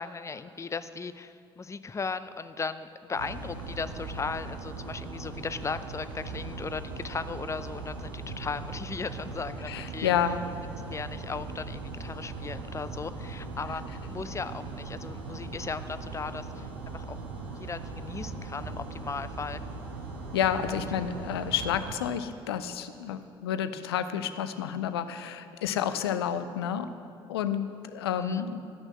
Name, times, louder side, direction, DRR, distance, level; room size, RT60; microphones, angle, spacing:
voice 1, 0.0-10.1 10.8-17.2 17.6-19.6 28.2-28.5, left 4 dB, 20° left, 12 dB, 0.6 m, -37 dB
sound 1, 3.1-21.9, right 3 dB, 80° right, 1.3 m, -39 dB
voice 2, 9.7-10.4 20.3-26.9 27.3-27.7 27.9-28.6, left 9 dB, 80° left, 11 dB, 0.5 m, -30 dB
13.0 x 6.2 x 7.6 m, 2.5 s
figure-of-eight pair, 55°, 13 cm